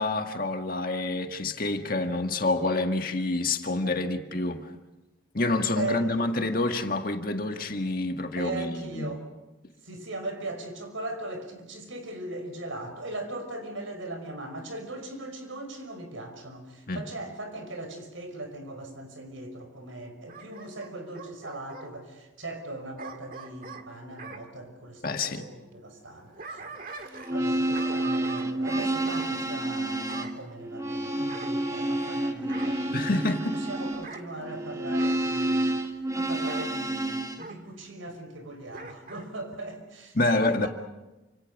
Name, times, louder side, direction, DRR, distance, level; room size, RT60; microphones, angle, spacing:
voice 1, 0.0-4.7 5.3-9.1 16.9-17.0 25.0-25.5 32.9-33.6 40.2-40.7, left 2 dB, 45° left, 5 dB, 1.9 m, -27 dB
voice 2, 5.8-6.2 6.5-6.7 8.4-9.2 9.8-33.2 33.5-40.7, right 2 dB, 85° right, 6 dB, 5.6 m, -39 dB
Bark / Growling, 20.3-21.9 23.0-24.4 26.1-27.4 27.7-29.3 30.1-30.4 31.3-32.1 32.5-32.8 33.9-34.3 35.0-35.2 36.5-36.7 37.4-37.6 38.7-39.3 39.6-39.7, right 4 dB, 45° right, 1.9 m, -42 dB
sound 1, 27.2-37.4, right 1 dB, 15° right, 1.8 m, -29 dB
28.5 x 27.0 x 5.5 m, 1.0 s
head